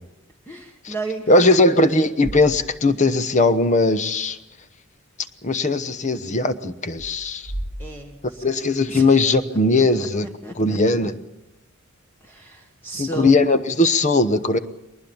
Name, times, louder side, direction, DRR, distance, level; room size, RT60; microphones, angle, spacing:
voice 1, 0.5-1.5 7.8-8.4 8.9-9.1 9.7-10.1 10.4-11.1 12.2-13.4, right 2 dB, 10° left, 2 dB, 1.4 m, -34 dB
voice 2, 1.3-4.4 5.4-7.5 8.4-10.3 10.6-11.1 12.9-14.6, left 2 dB, 35° left, 12 dB, 0.9 m, -19 dB
sound 1, 2.2-3.2 3.5-3.6 6.8-8.9, right 1 dB, 50° left, 5.4 m, -36 dB
21.0 x 20.0 x 7.1 m, 0.95 s
head